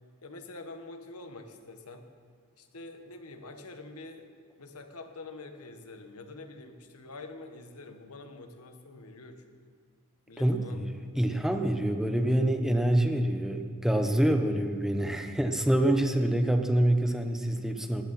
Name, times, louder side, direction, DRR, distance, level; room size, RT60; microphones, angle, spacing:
voice 1, 0.2-2.1 2.6-4.3 4.6-9.6 10.3-11.5 15.9-16.3 17.1-17.2, left 2 dB, 80° left, 6 dB, 1.4 m, -46 dB
voice 2, 10.4-10.9 11.1-18.0, right 1 dB, ahead, 5 dB, 0.9 m, -26 dB
18.0 x 13.0 x 4.3 m, 2.1 s
head